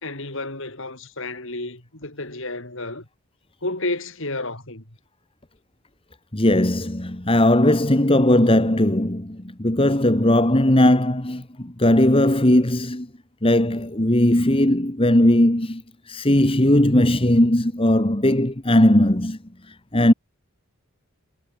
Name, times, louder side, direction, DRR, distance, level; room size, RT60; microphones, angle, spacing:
voice 1, 0.0-3.0 3.6-4.8, left 2 dB, 60° left, 5.0 m, -31 dB
voice 2, 6.3-13.1 13.4-19.4 19.9-20.1, left 1 dB, 25° left, 1.8 m, -18 dB
head